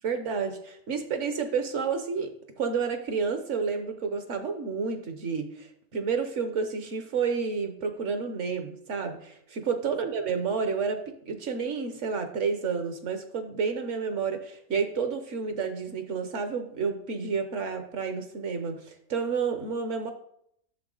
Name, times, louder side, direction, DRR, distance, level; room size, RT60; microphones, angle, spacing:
voice 1, 0.0-2.3 2.6-20.1, right 5 dB, 60° right, 7 dB, 1.2 m, -30 dB
10.0 x 6.9 x 3.9 m, 0.70 s
omnidirectional pair, 1.5 m